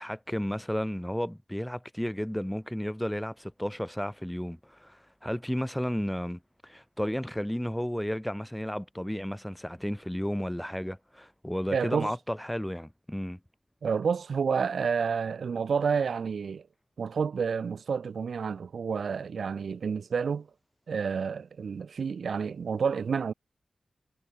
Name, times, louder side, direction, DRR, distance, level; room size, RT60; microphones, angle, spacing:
voice 1, 0.0-13.4, equal, 5° left, 3.1 m, -33 dB
voice 2, 11.7-12.1 13.8-16.6 17.0-20.5 20.9-23.3, right 6 dB, 85° right, 3.4 m, -29 dB
wide cardioid pair, 135°, 0 cm